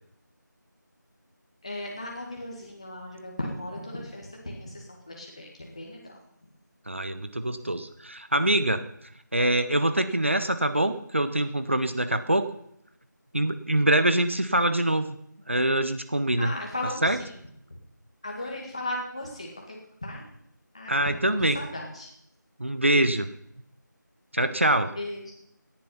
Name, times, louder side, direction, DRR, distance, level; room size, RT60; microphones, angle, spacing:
voice 1, 1.6-6.1 16.4-17.3 18.2-19.8 20.0-20.2 20.7-22.1 25.0-25.3, left 1 dB, 20° left, -1 dB, 2.0 m, -36 dB
voice 2, 6.9-8.9 9.3-12.5 13.3-15.2 15.5-16.5 17.0-17.2 20.9-21.6 22.6-23.3 24.3-25.0, right 1 dB, 40° right, 11 dB, 0.9 m, -24 dB
18.0 x 11.0 x 5.7 m, 0.72 s
figure-of-eight pair, 175°, 11 cm